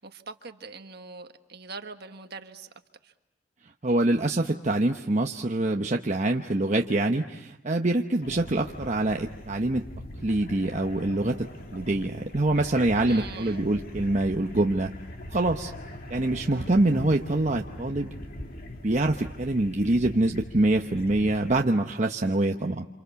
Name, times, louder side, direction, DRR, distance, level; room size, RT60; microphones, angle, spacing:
voice 1, 0.0-2.7 3.0-3.1 13.0-13.6 16.5-16.7, right 4 dB, 55° right, 6 dB, 1.5 m, -42 dB
voice 2, 3.8-9.8 10.2-14.9 15.3-15.7 16.1-18.1 18.8-22.9, right 2 dB, 35° right, 3 dB, 0.9 m, -25 dB
sound 1, 8.2-21.7, left 1 dB, 50° left, 2.1 m, -41 dB
28.5 x 27.0 x 7.0 m, 0.90 s
head